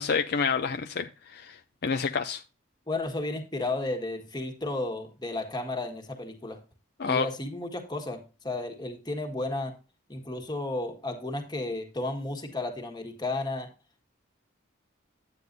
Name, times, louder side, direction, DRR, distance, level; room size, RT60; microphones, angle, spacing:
voice 1, 0.0-1.6 1.8-2.4 7.0-7.3, left 5 dB, 50° left, 0.4 m, -28 dB
voice 2, 2.9-6.6 7.0-9.7 10.1-13.7, left 2 dB, 20° left, 1.5 m, -33 dB
9.4 x 9.2 x 2.6 m
head